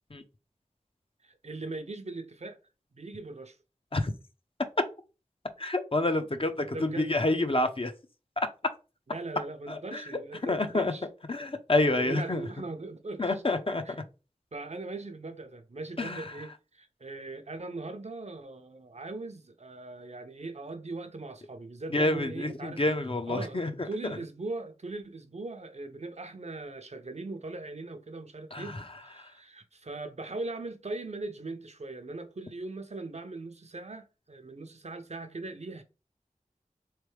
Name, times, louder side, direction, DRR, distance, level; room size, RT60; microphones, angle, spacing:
voice 1, 1.2-2.6 2.9-3.6 6.7-7.1 9.1-11.0 12.0-13.3 13.8-13.9 14.5-22.8 23.3-23.6 23.8-35.8, right 2 dB, 55° right, 0.6 m, -40 dB
voice 2, 5.6-7.9 9.7-10.0 10.4-10.9 11.3-12.5 13.2-14.0 16.0-16.3 21.9-23.7 24.0-24.2 28.5-28.8 29.2-29.3, left 2 dB, 40° left, 0.6 m, -28 dB
3.6 x 3.3 x 3.2 m
wide cardioid pair, 45°, 14 cm